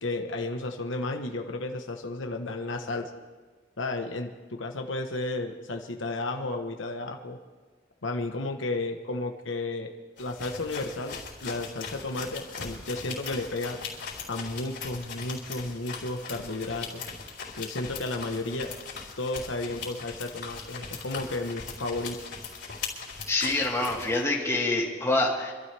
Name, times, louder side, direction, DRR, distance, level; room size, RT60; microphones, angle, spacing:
voice 1, 0.0-3.1 3.8-7.4 8.0-9.9 10.2-13.8 14.3-17.0 17.5-18.7 19.2-22.2, left 2 dB, 90° left, 4 dB, 1.2 m, -33 dB
sound 1, 10.2-24.2, left 5 dB, 65° left, 4.1 m, -40 dB
voice 2, 23.3-25.5, left 2 dB, 15° left, -3 dB, 2.5 m, -26 dB
26.0 x 12.5 x 3.5 m, 1.4 s
head